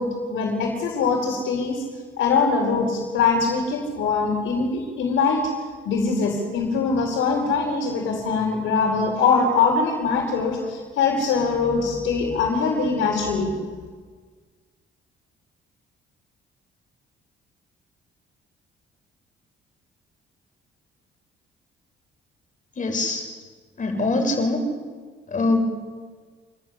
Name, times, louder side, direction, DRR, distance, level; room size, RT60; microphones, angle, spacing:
voice 1, 0.0-1.8 2.2-5.4 5.8-13.6, left 4 dB, 85° left, -1 dB, 4.9 m, -22 dB
voice 2, 22.8-23.2 23.8-24.6 25.3-25.6, left 2 dB, 40° left, 3 dB, 7.1 m, -23 dB
27.5 x 13.0 x 9.8 m, 1.5 s
cardioid pair, 90°, 20 cm